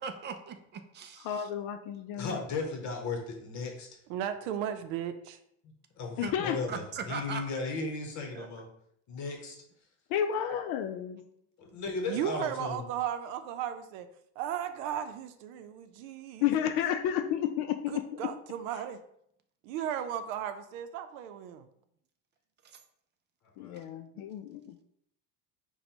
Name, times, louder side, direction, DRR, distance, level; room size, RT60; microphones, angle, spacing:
voice 1, 0.0-1.5 6.2-6.3 6.7-7.4 8.3-8.5 10.5-10.6 22.6-22.8 23.8-23.9 24.1-24.2, right 6 dB, 30° right, 7 dB, 0.3 m, -40 dB
voice 2, 1.2-2.4 6.2-6.6 10.1-11.2 16.4-18.0 23.6-24.8, left 10 dB, 60° left, 8 dB, 0.5 m, -31 dB
voice 3, 2.2-3.9 5.6-8.6 9.1-9.6 11.6-12.8 23.6-23.8, left 3 dB, 45° left, 2 dB, 0.9 m, -36 dB
voice 4, 4.1-5.4 12.1-14.1 14.4-16.7 17.9-19.0 19.6-21.7, right 9 dB, 80° right, 9 dB, 0.6 m, -35 dB
5.1 x 2.3 x 4.4 m, 0.71 s
cardioid pair, 130°, 40 cm